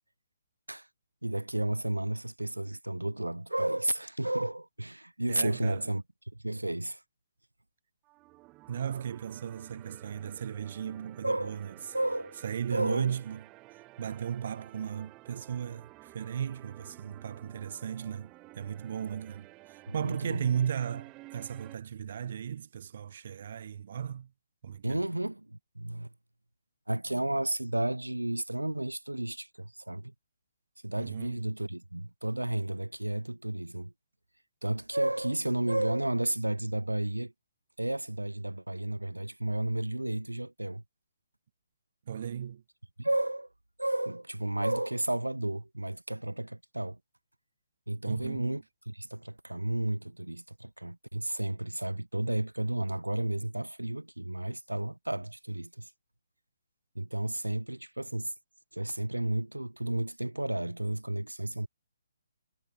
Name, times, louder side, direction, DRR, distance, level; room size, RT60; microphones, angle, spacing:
voice 1, 1.2-6.0 6.4-7.0 11.2-11.6 11.9-12.4 12.7-13.1 19.9-20.4 24.8-26.1 26.9-30.1 30.8-33.9 34.6-37.3 37.8-40.8 43.0-43.5 43.8-47.0 47.9-55.9 57.0-58.3 58.7-61.7, right 1 dB, 85° right, 1.8 m, -32 dB
voice 2, 5.3-5.9 8.7-11.9 12.4-13.4 13.7-24.3 24.6-25.0 31.0-31.5 42.1-42.6 48.0-48.6, right 8 dB, 45° right, 1.5 m, -36 dB
sound 1, 8.0-21.7, right 22 dB, 20° right, 5.8 m, -53 dB
figure-of-eight pair, 135°, 0 cm